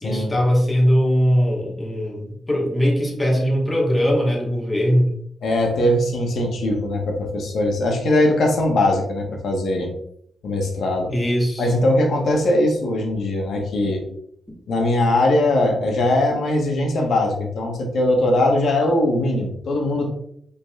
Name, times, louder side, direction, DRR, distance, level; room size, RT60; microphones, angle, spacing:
voice 1, 0.0-5.1 11.1-11.7, equal, 20° left, -2 dB, 1.4 m, -20 dB
voice 2, 5.4-9.9 10.4-11.1 11.6-14.1 14.7-20.1, left 1 dB, 75° left, 1 dB, 1.2 m, -20 dB
5.5 x 4.0 x 2.4 m, 0.67 s
cardioid pair, 80°, 0 cm